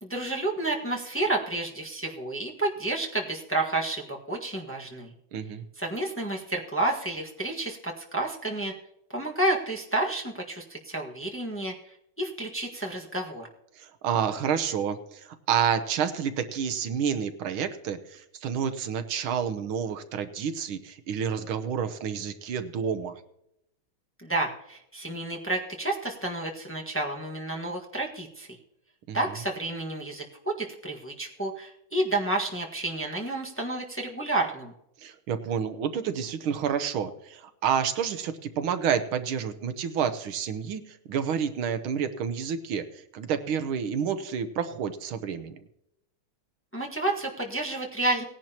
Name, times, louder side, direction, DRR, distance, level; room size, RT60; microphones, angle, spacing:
voice 1, 0.0-5.1 5.8-8.7 9.1-13.5 24.2-28.5 29.1-34.7 46.7-48.2, right 2 dB, 5° left, -1 dB, 1.3 m, -30 dB
voice 2, 5.3-5.6 13.8-23.2 29.1-29.2 35.0-45.6, right 7 dB, 80° right, 10 dB, 1.7 m, -29 dB
18.0 x 10.5 x 2.9 m, 0.78 s
omnidirectional pair, 2.3 m